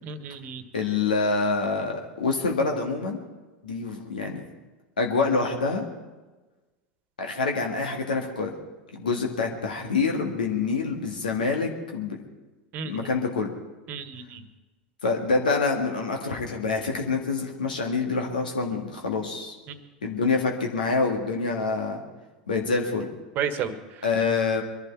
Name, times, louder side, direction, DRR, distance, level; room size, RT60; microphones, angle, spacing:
voice 1, 0.0-0.6 12.7-13.1 13.9-14.4 19.7-19.8 23.3-23.8, right 7 dB, 45° right, 11 dB, 1.4 m, -32 dB
voice 2, 0.7-3.2 3.6-4.4 5.0-5.9 7.2-8.5 8.9-12.2 12.8-13.5 15.0-19.5 20.0-22.0 22.5-23.1 24.0-24.6, left 4 dB, 80° left, 1 dB, 1.8 m, -26 dB
23.5 x 11.5 x 4.7 m, 1.2 s
figure-of-eight pair, 85°, 5 cm